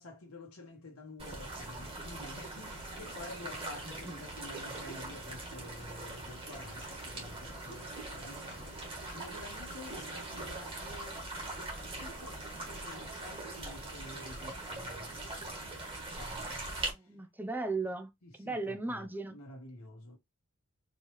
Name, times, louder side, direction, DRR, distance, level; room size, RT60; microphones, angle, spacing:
voice 1, 0.0-11.2 11.7-17.1 18.2-20.2, left 2 dB, 80° left, 1.2 m, -50 dB
sound 1, 1.2-16.9, right 2 dB, 25° right, 1.6 m, -42 dB
sound 2, 1.7-13.1, left 2 dB, 20° left, 1.3 m, -56 dB
voice 2, 16.8-18.1 18.4-19.4, right 3 dB, 10° right, 0.5 m, -37 dB
4.5 x 3.2 x 3.1 m
head